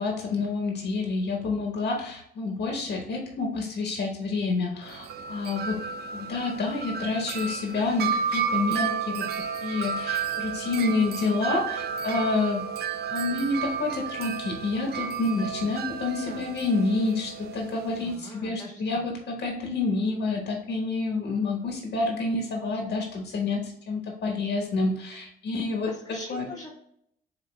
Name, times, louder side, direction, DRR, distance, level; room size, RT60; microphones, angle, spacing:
voice 1, 0.0-5.8 6.1-12.7 13.1-26.4, left 3 dB, 65° left, 1 dB, 1.1 m, -28 dB
Wind chime, 4.8-18.2, right 7 dB, 55° right, 0.4 m, -32 dB
voice 2, 18.0-19.0 25.9-26.7, left 2 dB, 20° left, 0 dB, 0.7 m, -43 dB
8.1 x 2.7 x 2.2 m, 0.74 s
cardioid pair, 90°, 20 cm